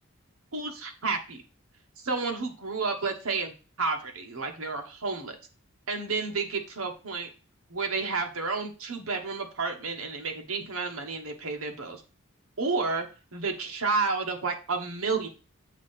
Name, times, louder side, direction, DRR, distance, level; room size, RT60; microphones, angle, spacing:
voice 1, 0.5-1.4 2.0-5.4 5.9-7.3 7.7-12.0 12.6-13.1 13.3-15.3, right 4 dB, 70° right, 3 dB, 1.3 m, -31 dB
7.3 x 2.8 x 5.7 m, 0.34 s
head